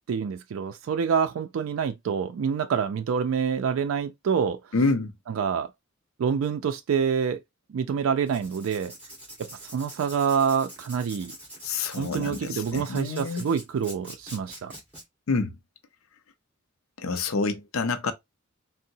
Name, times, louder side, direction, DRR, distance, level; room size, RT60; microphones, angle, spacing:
voice 1, 0.1-4.6 5.3-5.7 6.2-7.4 7.7-8.9 9.4-11.3 12.0-14.7, right 6 dB, 80° right, 0.3 m, -27 dB
voice 2, 4.7-5.1 11.6-13.5 15.3-15.5 17.0-18.1, left 3 dB, 85° left, 0.5 m, -27 dB
Writing, 8.3-15.0, right 1 dB, 5° right, 1.8 m, -45 dB
3.7 x 2.0 x 2.6 m
head